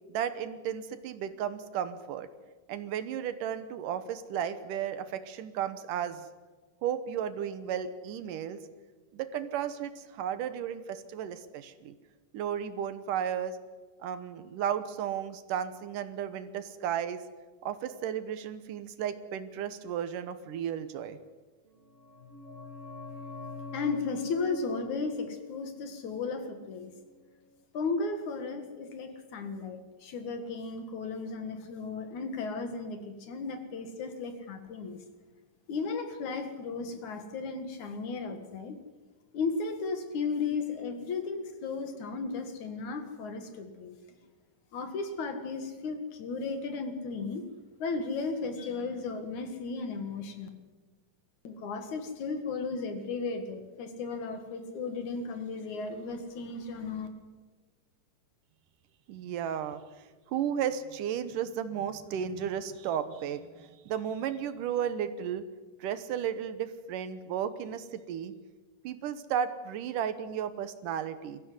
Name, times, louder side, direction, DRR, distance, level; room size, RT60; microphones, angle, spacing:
voice 1, 0.1-2.3 2.7-6.3 6.8-8.6 9.1-12.0 12.3-13.6 14.0-17.2 17.6-21.2 59.1-65.5 65.8-68.3 68.8-71.4, right 9 dB, 80° right, 12 dB, 2.6 m, -34 dB
sound 1, 21.7-27.2 27.4-27.5, left 3 dB, 20° right, 3.5 m, -45 dB
voice 2, 23.7-26.9 27.7-35.0 35.7-38.8 39.3-44.0 44.7-47.4 47.8-50.5 51.4-57.1, left 4 dB, 65° left, 7 dB, 3.2 m, -35 dB
22.5 x 15.0 x 9.6 m, 1.3 s
omnidirectional pair, 3.8 m